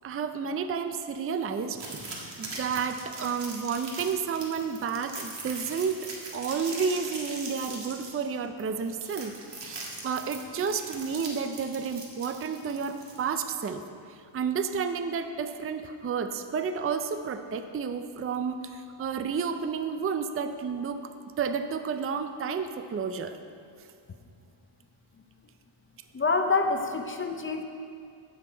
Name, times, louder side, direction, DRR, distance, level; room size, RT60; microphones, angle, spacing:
voice 1, 0.0-2.1 2.4-9.3 9.6-13.8 14.3-21.0 21.4-23.3, right 6 dB, 30° right, 8 dB, 0.4 m, -31 dB
sound 1, 1.7-13.5, right 3 dB, 55° right, 1.8 m, -41 dB
voice 2, 26.1-27.6, left 4 dB, 25° left, 5 dB, 0.5 m, -26 dB
15.5 x 6.2 x 4.4 m, 2.5 s
wide cardioid pair, 135°, 50 cm